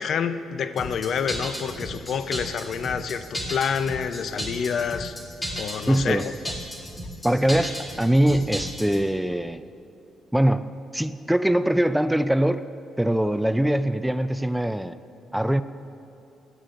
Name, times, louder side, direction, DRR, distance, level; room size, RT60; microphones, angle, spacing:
voice 1, 0.0-5.2 5.6-6.2, left 7 dB, 60° left, 11 dB, 0.5 m, -28 dB
sound 1, 0.8-9.0, equal, 15° left, 2.4 m, -34 dB
voice 2, 5.9-6.3 7.2-9.7 10.3-10.7 10.9-12.7 13.0-15.0 15.3-15.6, right 1 dB, 5° right, 13 dB, 0.3 m, -22 dB
17.0 x 12.0 x 2.5 m, 2.7 s
cardioid pair, 90°, 0 cm